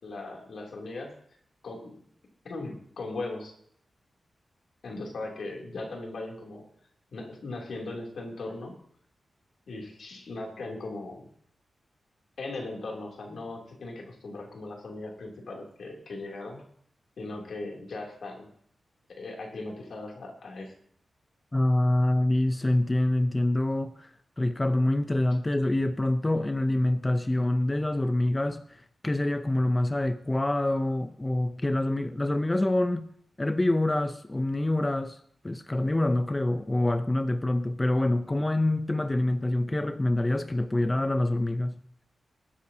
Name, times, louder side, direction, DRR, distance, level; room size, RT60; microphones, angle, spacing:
voice 1, 0.0-1.1 1.6-2.0 2.4-3.5 4.8-6.6 7.1-8.8 9.7-11.3 12.4-16.6 17.2-18.5 19.1-20.7, left 2 dB, 75° left, 2.9 m, -38 dB
voice 2, 21.5-24.1 24.4-33.1 33.4-35.2 35.4-41.8, left 1 dB, 20° left, 0.5 m, -26 dB
21.0 x 9.9 x 2.8 m
wide cardioid pair, 85°, 0 cm